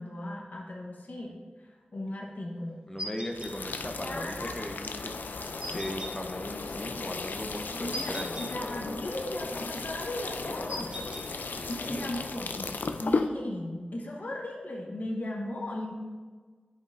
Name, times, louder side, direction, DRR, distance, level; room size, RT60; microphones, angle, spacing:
voice 1, 0.0-2.9 4.0-4.5 7.7-8.1 8.5-10.9 11.7-15.9, left 1 dB, 65° left, -2 dB, 1.1 m, -37 dB
voice 2, 2.9-5.1 5.6-8.4 11.5-12.1, left 1 dB, 20° left, 3 dB, 0.7 m, -38 dB
sound 1, 3.0-3.5 5.6-6.1 7.9-8.5 10.7-11.2, equal, 35° right, 1.5 m, -38 dB
sound 2, 3.3-13.3, left 4 dB, 85° left, 0.4 m, -35 dB
10.0 x 5.3 x 2.5 m, 1.5 s
wide cardioid pair, 75°, 3 cm